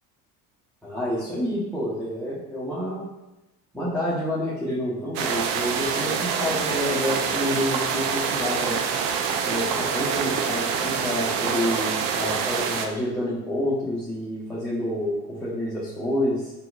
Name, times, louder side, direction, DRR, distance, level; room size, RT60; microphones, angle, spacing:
voice 1, 0.8-3.1 3.7-8.8 9.4-16.5, equal, 5° left, -10 dB, 1.0 m, -28 dB
sound 1, 5.2-12.9, right 6 dB, 65° right, 0.6 m, -26 dB
4.0 x 2.6 x 2.5 m, 0.99 s
hypercardioid pair, 75°, 46 cm